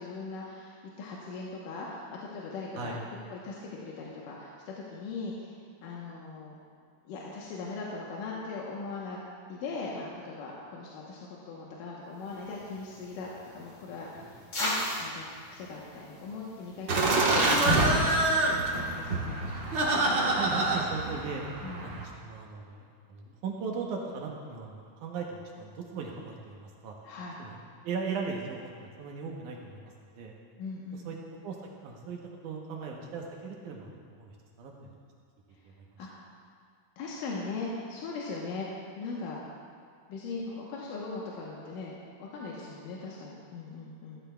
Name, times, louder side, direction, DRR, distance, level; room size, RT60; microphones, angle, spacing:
voice 1, 0.0-3.0 3.3-6.6 7.1-9.2 9.5-19.5 19.9-20.3 21.6-22.0 27.0-27.4 30.6-31.1 36.0-36.1 37.0-38.7 39.0-39.4 40.1-44.2, left 3 dB, 75° left, -4 dB, 2.6 m, -40 dB
sound 1, 12.2-17.3, left 1 dB, 45° left, 2.9 m, -39 dB
Laughter, 16.9-22.0, right 2 dB, 55° right, 1.3 m, -26 dB
voice 2, 20.3-21.4 21.8-27.0 27.4-27.6 27.8-28.7 29.0-30.3 30.9-31.2 31.4-31.6 31.8-33.9 34.2-34.3 34.6-34.9 35.6-35.9, right 5 dB, 75° right, 0 dB, 2.3 m, -38 dB
14.0 x 13.5 x 2.3 m, 2.1 s
omnidirectional pair, 3.9 m